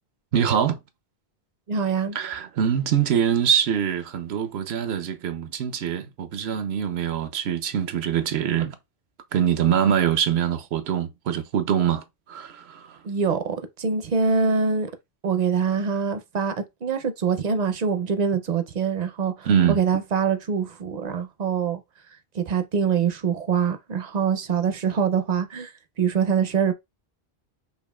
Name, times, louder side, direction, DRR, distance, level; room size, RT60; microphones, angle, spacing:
voice 1, 0.3-0.8 2.1-8.8 9.3-13.0 19.5-19.8, right 8 dB, 90° right, 0.9 m, -24 dB
voice 2, 1.7-2.2 13.0-14.9 15.2-21.8 22.3-25.7 26.0-26.7, right 6 dB, 55° right, 0.5 m, -24 dB
5.5 x 2.4 x 2.2 m
omnidirectional pair, 1.0 m